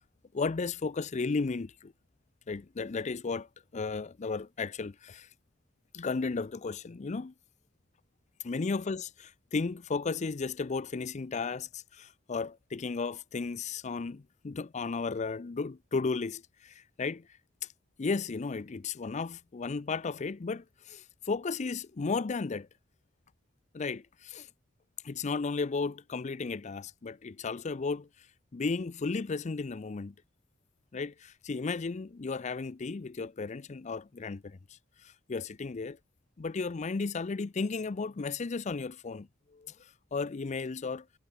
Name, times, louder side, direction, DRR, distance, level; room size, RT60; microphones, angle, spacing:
voice 1, 0.3-1.9 2.5-3.5 3.7-5.3 5.9-7.3 8.4-17.2 18.0-22.7 23.7-24.5 25.0-28.1 28.5-30.1 30.9-34.6 35.3-36.0 36.4-39.3 39.5-39.7 40.1-41.0, left 4 dB, 35° left, 0.5 m, -34 dB
head